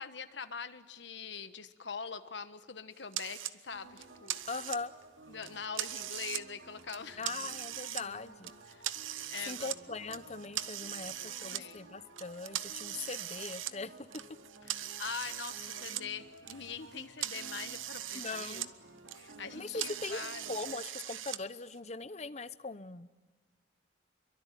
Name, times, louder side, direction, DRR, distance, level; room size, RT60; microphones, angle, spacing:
voice 1, 0.0-4.4 5.3-7.3 8.7-8.8 9.3-9.7 11.0-11.8 14.7-18.6 19.2-20.4, left 6 dB, 65° left, 10 dB, 1.3 m, -43 dB
sound 1, 3.1-3.5 4.0-5.0 5.4-6.4 6.8-8.0 8.4-9.8 10.1-11.6 12.2-16.0 16.3-18.7 19.0-21.4, right 12 dB, 85° right, 0.9 m, -40 dB
sound 2, 3.7-20.8, right 2 dB, 70° right, 3.2 m, -55 dB
voice 2, 4.5-4.9 7.2-8.5 9.4-13.9 18.1-18.7 19.5-20.2 20.5-23.1, left 4 dB, 35° left, 13 dB, 0.8 m, -40 dB
26.5 x 23.5 x 9.2 m, 1.3 s
head